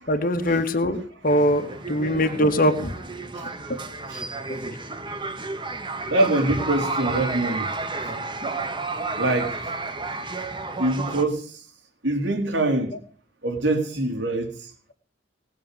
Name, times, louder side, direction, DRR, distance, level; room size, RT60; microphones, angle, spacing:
voice 1, 0.1-3.0, equal, 50° left, 1.9 m, -22 dB
sound 1, 1.2-11.3, right 3 dB, 25° right, 1.8 m, -32 dB
voice 2, 6.1-7.7 9.2-9.6 10.8-11.5 12.0-13.0 13.4-14.5, right 2 dB, 80° right, 3.4 m, -24 dB
19.5 x 7.5 x 8.3 m
head